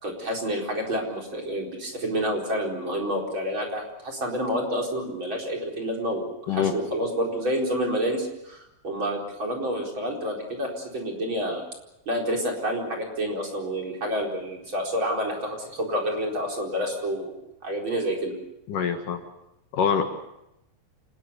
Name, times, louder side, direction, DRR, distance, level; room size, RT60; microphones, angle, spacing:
voice 1, 0.0-11.6 12.1-17.3 17.6-18.3, equal, 30° right, 0 dB, 4.9 m, -29 dB
voice 2, 18.7-19.2 19.7-20.0, left 7 dB, 65° left, 5 dB, 3.0 m, -24 dB
28.0 x 19.5 x 6.8 m, 0.87 s
omnidirectional pair, 4.4 m